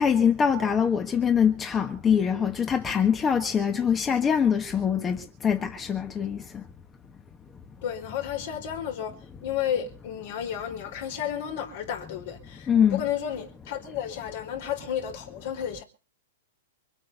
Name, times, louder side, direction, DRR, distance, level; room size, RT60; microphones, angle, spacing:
voice 1, 0.0-6.6 12.7-13.0, left 7 dB, 20° left, 1.5 m, -23 dB
voice 2, 7.8-9.2 9.4-15.8, left 9 dB, 60° left, 4.5 m, -32 dB
23.5 x 8.8 x 6.9 m
hypercardioid pair, 130°, 0 cm